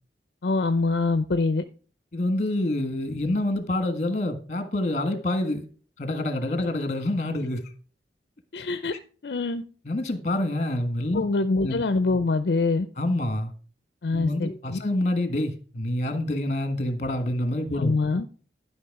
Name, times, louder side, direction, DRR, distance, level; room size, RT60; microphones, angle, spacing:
voice 1, 0.4-1.6 8.5-8.9 9.2-9.6 11.1-12.9 14.0-14.8 17.8-18.3, left 3 dB, 65° left, 0.5 m, -24 dB
voice 2, 2.1-5.6 6.0-7.6 9.8-11.2 11.6-11.8 13.0-13.5 14.1-18.0, left 1 dB, 40° left, 1.5 m, -27 dB
11.5 x 5.7 x 4.7 m
head